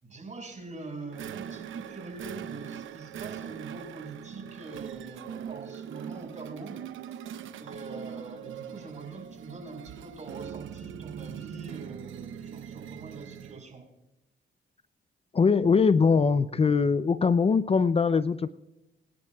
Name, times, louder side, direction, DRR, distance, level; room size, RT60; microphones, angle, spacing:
voice 1, 0.0-7.2 7.6-13.9, right 3 dB, 35° right, 3 dB, 5.2 m, -44 dB
sound 1, 1.1-13.7, right 9 dB, 85° right, 0.8 m, -41 dB
voice 2, 15.3-18.5, left 5 dB, 30° left, 14 dB, 0.5 m, -22 dB
23.5 x 10.5 x 2.3 m, 0.96 s
cardioid pair, 75°, 20 cm